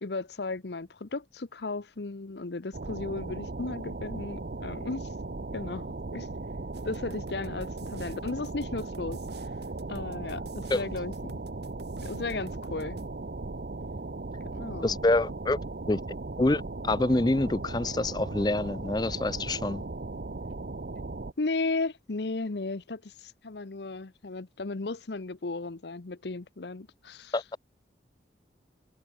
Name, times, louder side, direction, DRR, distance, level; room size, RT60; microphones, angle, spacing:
voice 1, 0.0-5.1 5.5-6.3 6.8-9.2 9.9-11.3 12.0-13.0 14.4-14.9 21.4-27.3, left 3 dB, 75° left, 0.9 m, -35 dB
sound 1, 2.7-21.3, right 3 dB, 60° right, 0.7 m, -37 dB
sound 2, 6.7-13.0, right 3 dB, 75° right, 4.8 m, -52 dB
voice 2, 14.8-15.6 15.9-16.0 16.4-19.8 27.3-27.4, left 2 dB, 25° left, 0.5 m, -26 dB
head